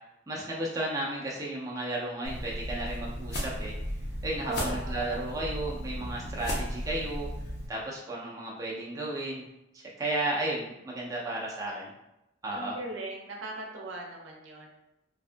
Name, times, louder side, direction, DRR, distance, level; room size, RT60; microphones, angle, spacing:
voice 1, 0.3-3.7 4.2-7.3 7.7-9.4 9.7-11.9 12.4-12.8, right 1 dB, 15° right, -4 dB, 0.3 m, -33 dB
sound 1, 2.2-7.7, equal, 60° left, 0.6 m, -35 dB
voice 2, 4.4-5.2 12.5-14.7, right 2 dB, 70° right, 0 dB, 0.5 m, -38 dB
2.6 x 2.3 x 2.5 m, 0.88 s
head